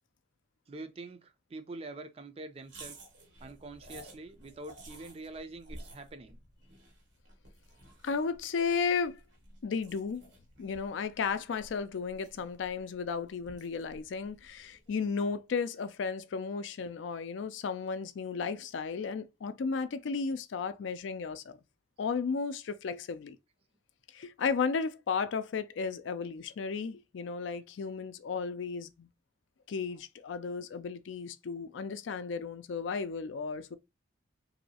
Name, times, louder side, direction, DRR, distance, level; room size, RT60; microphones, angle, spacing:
voice 1, 0.7-3.0 3.4-6.4 14.9-15.0 29.9-30.0, right 2 dB, 30° right, 0.4 m, -45 dB
sound 1, 2.6-15.1, right 1 dB, 90° right, 1.4 m, -54 dB
voice 2, 8.0-9.2 9.6-10.3 10.6-21.6 22.0-23.4 24.1-29.1 29.7-33.8, left 5 dB, 90° left, 0.4 m, -34 dB
3.0 x 2.7 x 2.8 m
head